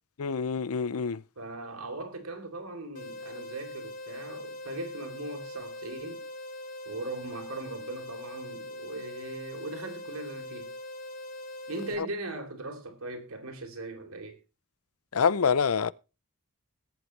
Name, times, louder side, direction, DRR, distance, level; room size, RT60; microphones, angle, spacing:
voice 1, 0.2-1.2 15.1-15.9, left 6 dB, 85° left, 0.6 m, -26 dB
voice 2, 1.4-6.2 6.9-10.7 11.7-14.4, right 2 dB, 85° right, 3.6 m, -39 dB
sound 1, 2.9-11.9, left 1 dB, 40° left, 3.7 m, -42 dB
20.5 x 8.0 x 3.3 m
head